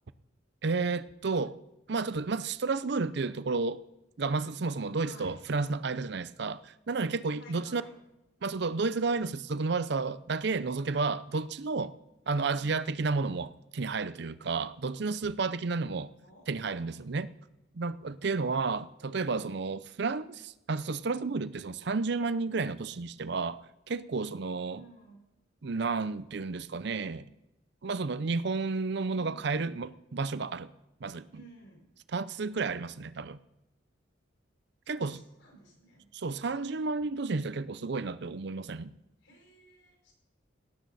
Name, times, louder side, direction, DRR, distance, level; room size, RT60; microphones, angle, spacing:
voice 1, 0.6-1.6 1.9-3.8 4.2-7.8 8.4-11.9 12.3-16.1 16.5-17.3 17.7-24.8 25.6-27.3 27.8-30.7 31.0-31.4 32.1-33.4 34.9-35.2 36.1-38.9, right 4 dB, 60° right, 15 dB, 0.6 m, -31 dB
voice 2, 5.0-5.4 7.4-7.9 16.2-17.0 24.6-25.2 29.1-29.6 31.3-31.9 34.9-36.1 39.2-40.1, right 1 dB, 70° left, 0 dB, 5.5 m, -55 dB
17.5 x 12.5 x 4.1 m, 0.90 s
head